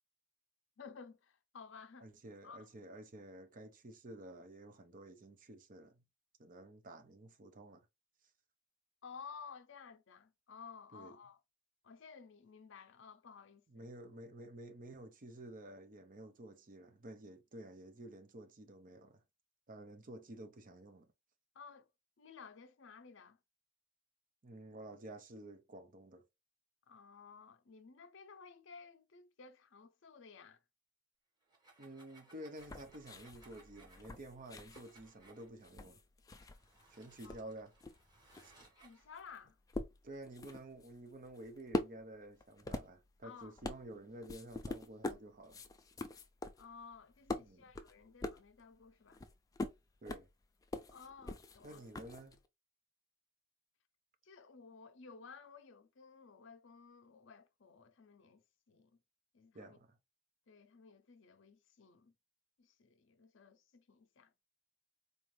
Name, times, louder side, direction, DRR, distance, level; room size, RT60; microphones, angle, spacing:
voice 1, 0.8-2.1 2.4-2.7 9.0-11.4 11.8-13.9 21.5-21.9 22.2-23.4 26.9-30.6 37.2-37.4 38.8-39.6 43.2-43.5 46.6-49.2 50.9-51.8 54.2-59.0 59.3-59.8 60.5-62.1 62.6-64.3, left 5 dB, 65° left, 0.6 m, -55 dB
voice 2, 2.0-6.0 6.4-7.9 10.9-11.2 13.7-19.2 19.7-21.1 24.4-26.2 31.8-36.0 36.9-37.7 38.4-38.5 40.0-45.6 47.4-47.7 50.0-50.3 51.6-52.4 59.5-60.0, right 1 dB, 40° right, 0.6 m, -51 dB
sound 1, 31.4-35.5 36.3-39.1, right 3 dB, 20° right, 1.3 m, -65 dB
sound 2, 32.6-36.8 37.1-52.5, left 2 dB, 15° left, 0.3 m, -44 dB
4.1 x 2.5 x 3.1 m
head